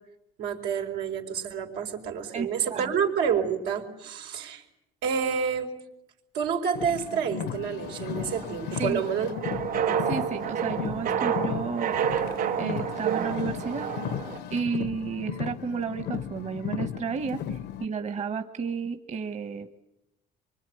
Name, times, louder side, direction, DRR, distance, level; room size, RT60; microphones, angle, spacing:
voice 1, 0.4-4.6 5.0-5.7 6.3-9.3, right 7 dB, 90° right, 3 dB, 4.3 m, -28 dB
voice 2, 2.3-2.9 8.8-9.1 10.0-12.0 12.2-12.3 12.6-13.9 14.5-19.8, right 5 dB, 45° right, 8 dB, 1.4 m, -32 dB
Car, 6.7-17.8, left 9 dB, 80° left, 1.0 m, -35 dB
sound 1, 7.8-14.4, right 8 dB, 60° right, 3.6 m, -30 dB
25.0 x 24.0 x 9.4 m, 0.85 s
cardioid pair, 110°, 17 cm